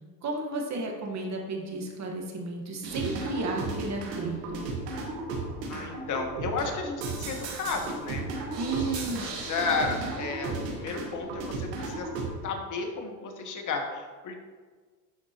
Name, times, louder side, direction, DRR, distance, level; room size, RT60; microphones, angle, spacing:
voice 1, 0.2-4.7 8.6-9.2, right 3 dB, 35° right, 1 dB, 1.4 m, -33 dB
sound 1, 2.8-12.3, right 3 dB, 85° right, 1.5 m, -35 dB
voice 2, 5.6-8.3 8.7-8.9 9.2-12.1 12.4-14.4, left 4 dB, 40° left, 4 dB, 1.3 m, -33 dB
11.0 x 4.3 x 2.9 m, 1.5 s
supercardioid pair, 90°, 47 cm